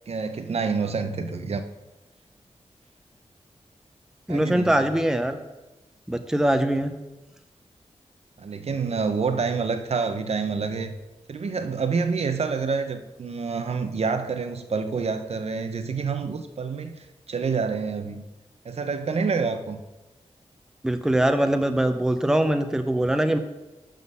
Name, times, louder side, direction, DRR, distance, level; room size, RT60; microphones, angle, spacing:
voice 1, 0.1-1.6 4.3-4.8 8.4-10.9 11.3-18.2 18.6-19.8, right 5 dB, 65° right, 8 dB, 0.7 m, -27 dB
voice 2, 4.3-5.4 6.1-6.9 20.8-23.4, right 1 dB, 5° right, 8 dB, 0.6 m, -22 dB
11.5 x 3.9 x 5.5 m, 1.1 s
wide cardioid pair, 100°, 12 cm